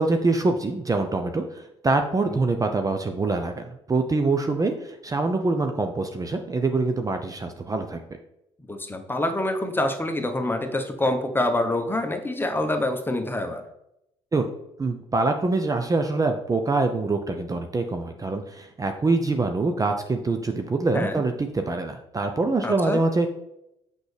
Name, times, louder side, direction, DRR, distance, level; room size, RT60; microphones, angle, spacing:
voice 1, 0.0-8.0 14.3-14.5 14.8-23.3, right 3 dB, 25° right, 5 dB, 0.6 m, -25 dB
voice 2, 8.7-13.6 20.9-21.2 22.6-23.0, left 1 dB, 15° left, 5 dB, 1.0 m, -26 dB
6.0 x 5.4 x 3.3 m, 0.82 s
hypercardioid pair, 55°, 15 cm